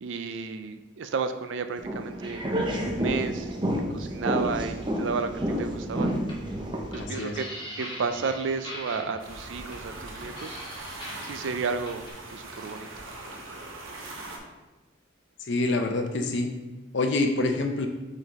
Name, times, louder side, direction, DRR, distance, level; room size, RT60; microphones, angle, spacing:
voice 1, 0.0-3.5 3.9-5.3 5.6-6.1 6.9-7.4 7.8-10.6 11.2-12.0 12.3-12.9, right 5 dB, 65° right, 8 dB, 0.4 m, -32 dB
sound 1, 1.8-7.0, equal, 25° right, 0.6 m, -29 dB
sound 2, 6.2-12.1, left 1 dB, 25° left, 1.0 m, -42 dB
voice 2, 7.0-7.4 15.4-16.5 16.9-17.9, left 2 dB, 60° left, 5 dB, 0.6 m, -26 dB
sound 3, 9.2-14.4, right 2 dB, 85° right, 1.1 m, -41 dB
8.8 x 3.9 x 3.0 m, 1.1 s
head